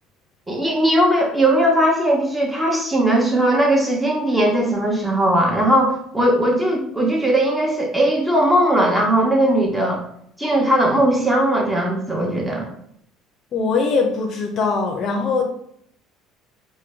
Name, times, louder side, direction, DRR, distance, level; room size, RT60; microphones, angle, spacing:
voice 1, 0.5-10.0 10.4-12.7, right 1 dB, 10° right, -1 dB, 1.1 m, -18 dB
voice 2, 13.5-15.4, left 4 dB, 50° left, 2 dB, 0.6 m, -21 dB
4.4 x 2.2 x 3.4 m, 0.68 s
hypercardioid pair, 60°, 0 cm